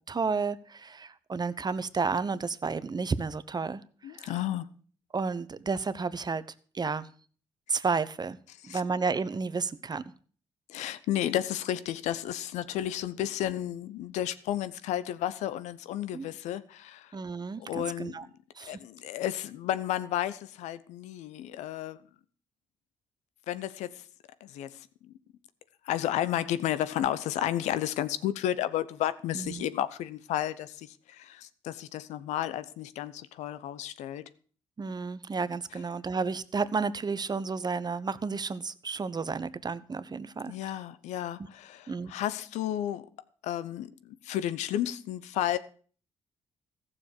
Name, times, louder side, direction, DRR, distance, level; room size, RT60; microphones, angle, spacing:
voice 1, 0.1-3.8 4.1-4.4 5.1-6.4 6.7-7.1 7.7-8.4 8.6-10.0 16.1-16.3 17.1-18.3 18.5-18.8 29.3-29.6 34.8-40.8 41.9-42.1, right 4 dB, 35° right, 1.0 m, -32 dB
voice 2, 4.0-4.7 8.6-8.8 10.7-17.2 17.6-18.3 18.7-22.0 23.5-24.0 24.4-25.1 25.8-34.3 40.5-43.1 43.4-45.6, left 12 dB, 80° left, 0.8 m, -32 dB
15.0 x 7.0 x 6.9 m
hypercardioid pair, 50°, 12 cm